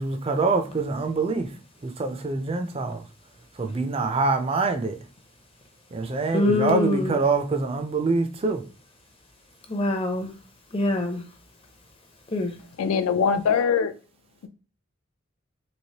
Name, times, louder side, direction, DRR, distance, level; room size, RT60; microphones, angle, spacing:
voice 1, 0.0-1.5 1.8-3.0 3.6-5.0 5.9-8.6, right 3 dB, 25° right, 0.3 m, -25 dB
voice 2, 6.3-7.2 9.7-10.3 10.7-11.2 12.3-12.5, left 2 dB, 25° left, 0.5 m, -24 dB
voice 3, 12.8-13.9, left 6 dB, 80° left, 0.4 m, -22 dB
3.2 x 2.8 x 2.8 m
head